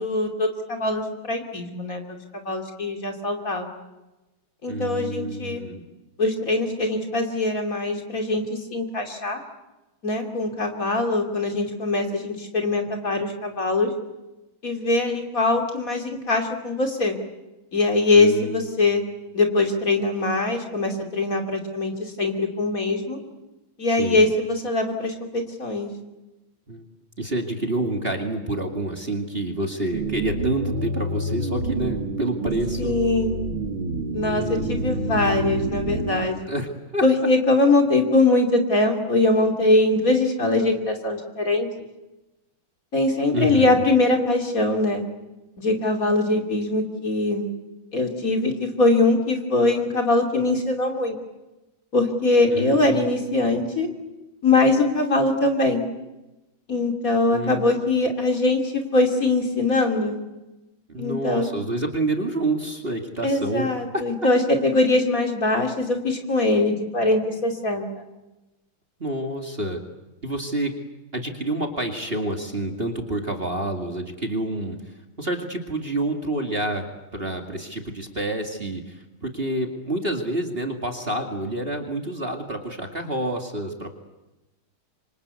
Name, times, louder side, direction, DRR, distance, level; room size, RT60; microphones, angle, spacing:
voice 1, 0.0-3.7 4.6-5.6 6.2-9.4 10.0-13.9 14.6-17.2 17.7-19.0 19.3-23.2 23.8-25.9 32.8-33.4 34.1-36.4 37.0-41.9 42.9-45.0 45.6-47.5 47.9-51.2 51.9-53.9 54.4-55.8 56.7-60.2 61.0-61.6 63.2-68.1, left 2 dB, 40° left, 4 dB, 3.1 m, -22 dB
voice 2, 4.7-5.9 18.1-18.7 24.0-24.3 26.7-26.9 27.2-33.0 34.2-34.9 36.5-37.0 43.3-43.8 52.5-53.1 53.4-53.6 57.3-57.7 60.9-63.7 63.9-64.0 69.0-69.8 70.2-70.7 71.1-83.9, right 1 dB, 25° right, 3 dB, 2.4 m, -28 dB
sound 1, 29.9-36.3, right 1 dB, 70° right, 3.4 m, -28 dB
27.0 x 25.5 x 8.3 m, 1.0 s
omnidirectional pair, 2.3 m